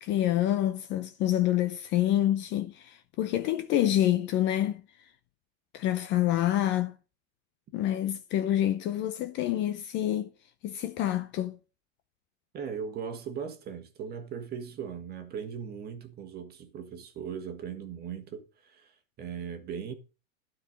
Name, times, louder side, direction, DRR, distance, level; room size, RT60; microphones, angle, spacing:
voice 1, 0.0-4.8 5.7-6.9 7.7-10.3 10.6-11.6, left 12 dB, 30° left, 0.6 m, -27 dB
voice 2, 12.5-19.9, right 7 dB, 25° right, 1.6 m, -39 dB
12.0 x 4.6 x 6.5 m
hypercardioid pair, 135°, 39 cm